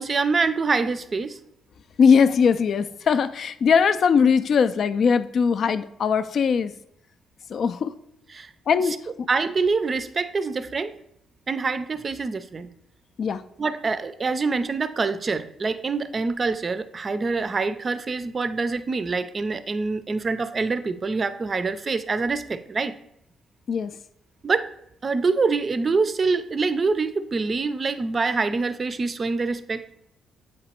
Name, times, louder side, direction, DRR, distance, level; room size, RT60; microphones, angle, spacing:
voice 1, 0.0-1.4 8.3-8.5 9.3-10.9 11.5-12.7 13.6-23.0 24.4-24.7 25.0-29.9, right 4 dB, 35° right, 13 dB, 0.4 m, -25 dB
voice 2, 2.0-6.7 7.5-7.9 8.7-9.3 13.2-13.4 23.7-23.9, left 6 dB, 55° left, 12 dB, 0.4 m, -20 dB
7.7 x 3.0 x 4.3 m, 0.76 s
cardioid pair, 90°, 0 cm